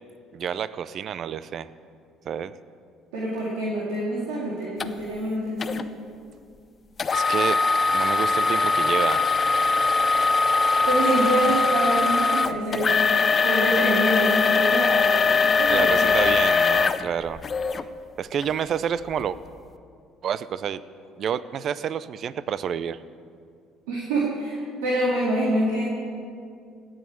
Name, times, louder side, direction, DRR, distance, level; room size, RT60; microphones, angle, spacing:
voice 1, 0.3-1.7 2.3-2.5 7.1-7.6 7.9-9.5 15.7-17.4 18.2-19.4 20.2-20.8 21.2-23.0, right 8 dB, 55° right, 16 dB, 0.5 m, -29 dB
voice 2, 3.1-5.8 10.9-16.3 23.9-25.8, right 1 dB, 80° right, -6 dB, 2.2 m, -26 dB
sound 1, 4.8-4.9 5.6-5.8 7.0-17.8 18.4-18.5 19.1-19.2, left 4 dB, 40° left, 0.6 m, -21 dB
17.0 x 6.5 x 8.8 m, 2.3 s
hypercardioid pair, 60°, 0 cm